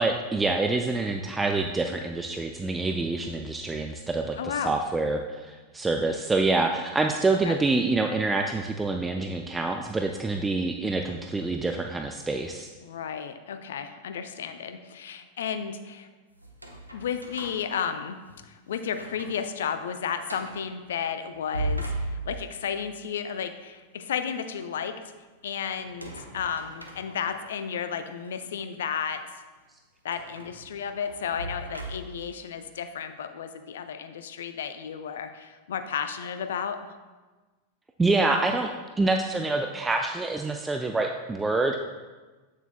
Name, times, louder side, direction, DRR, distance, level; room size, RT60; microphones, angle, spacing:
voice 1, 0.0-12.7 38.0-38.7 39.0-41.8, right 3 dB, 10° right, 4 dB, 0.3 m, -26 dB
voice 2, 4.4-4.7 7.4-7.6 12.8-16.1 16.7-18.2 18.4-24.9 25.4-29.2 30.0-36.8, left 7 dB, 60° left, 9 dB, 0.5 m, -33 dB
sound 1, 16.4-18.5 18.9-19.4 19.8-19.9 20.3-20.7 21.3-22.6 25.8-27.6 28.2-28.3 30.1-32.3, right 1 dB, 85° right, 0.7 m, -37 dB
8.2 x 7.0 x 2.2 m, 1.3 s
figure-of-eight pair, 90°, 0 cm